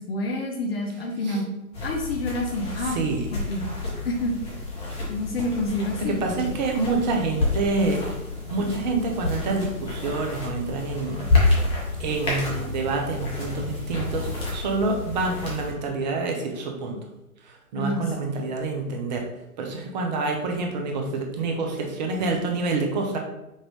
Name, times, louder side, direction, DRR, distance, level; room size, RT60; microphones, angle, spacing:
voice 1, 0.0-1.4 1.8-3.0 3.3-3.6 4.0-4.4 5.1-6.2 17.8-18.3, left 1 dB, 40° left, 1 dB, 0.6 m, -28 dB
sound 1, 1.7-15.7, left 3 dB, 15° left, 0.9 m, -29 dB
voice 2, 2.8-3.3 6.0-8.0 8.5-11.7 12.0-17.0 17.4-19.2 19.6-23.2, right 3 dB, 30° right, 2 dB, 0.7 m, -27 dB
5.3 x 2.5 x 3.2 m, 0.93 s
figure-of-eight pair, 125°, 45 cm